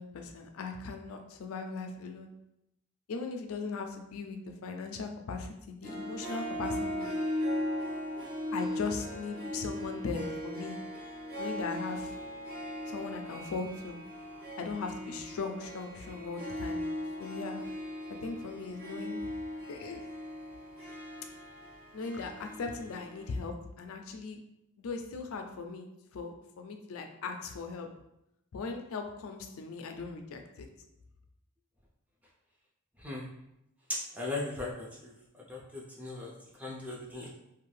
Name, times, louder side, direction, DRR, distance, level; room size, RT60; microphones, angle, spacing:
voice 1, 0.0-2.3 3.1-7.1 8.5-10.8 11.4-12.1 12.9-14.0 14.6-16.8 17.2-17.6 18.2-19.2 19.7-20.0 21.9-24.4 24.8-27.9 28.5-30.7, left 4 dB, 70° left, 5 dB, 0.4 m, -39 dB
Harp, 5.8-23.4, left 1 dB, 45° right, 0.9 m, -38 dB
voice 2, 34.2-35.1 35.5-36.3 36.6-37.3, left 2 dB, 5° right, -4 dB, 0.4 m, -38 dB
2.6 x 2.2 x 3.2 m, 0.84 s
head